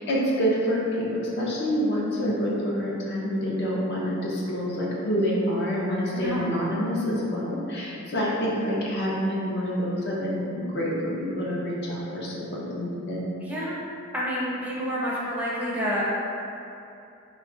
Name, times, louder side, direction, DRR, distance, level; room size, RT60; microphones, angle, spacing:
voice 1, 0.0-13.2, equal, 55° left, -5 dB, 0.6 m, -27 dB
voice 2, 6.1-6.5 13.4-13.8 14.1-16.1, equal, 10° right, -8 dB, 0.5 m, -29 dB
3.0 x 2.3 x 3.7 m, 2.7 s
head